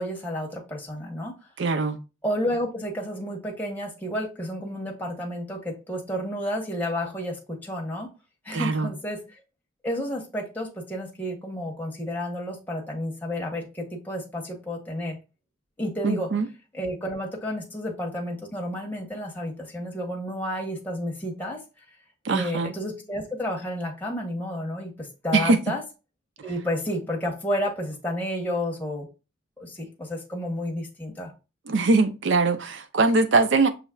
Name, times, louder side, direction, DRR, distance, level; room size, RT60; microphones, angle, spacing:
voice 1, 0.0-1.3 2.2-8.1 8.4-9.4 9.8-15.2 15.8-16.3 16.7-21.6 22.3-25.8 26.4-29.1 29.6-31.3, equal, 10° left, 1.0 m, -31 dB
voice 2, 1.6-2.0 8.5-8.9 16.0-16.5 22.2-22.7 25.3-25.6 31.7-33.7, right 3 dB, 60° right, 0.5 m, -22 dB
6.1 x 3.2 x 2.3 m
head